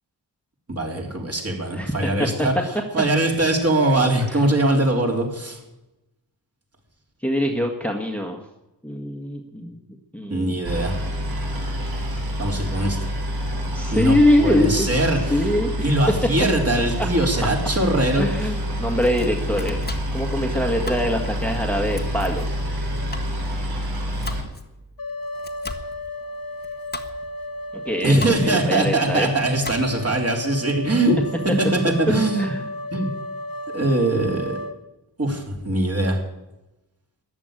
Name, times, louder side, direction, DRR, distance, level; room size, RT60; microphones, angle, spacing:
voice 1, 0.7-2.5 2.9-5.6 10.3-10.9 12.4-13.1 13.9-15.4 15.8-18.3 28.0-31.2 31.6-32.5 32.9-33.1 33.7-34.6 35.2-36.2, right 1 dB, 35° right, 1 dB, 3.9 m, -21 dB
voice 2, 1.7-2.5 4.2-4.4 7.2-8.4 8.8-9.8 10.1-10.6 13.7-15.9 18.2-19.8 20.1-22.5 27.9-29.3 30.9-31.0 32.4-32.6, left 1 dB, 5° left, 1 dB, 1.7 m, -23 dB
Boat Water vehicle, 10.6-24.4, equal, 65° right, 4.3 m, -27 dB
Domestic sounds home sounds, 18.8-30.2, left 2 dB, 25° left, 1.4 m, -39 dB
sound 1, 25.0-34.8, left 1 dB, 60° left, 1.2 m, -34 dB
14.5 x 10.5 x 9.1 m, 0.95 s
wide cardioid pair, 105°, 40 cm